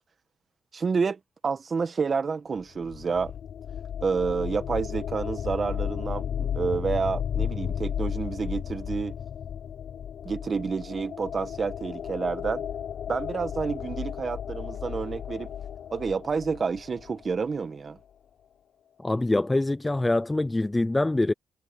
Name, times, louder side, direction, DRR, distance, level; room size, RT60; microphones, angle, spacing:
voice 1, 0.7-3.3 4.0-9.2 10.3-12.6 13.1-15.5 15.9-18.0, right 5 dB, 40° right, 1.7 m, -29 dB
sound 1, 2.6-17.4, left 9 dB, 60° left, 0.4 m, -34 dB
voice 2, 19.0-21.3, left 2 dB, 15° left, 0.6 m, -24 dB
cardioid pair, 90°, 0 cm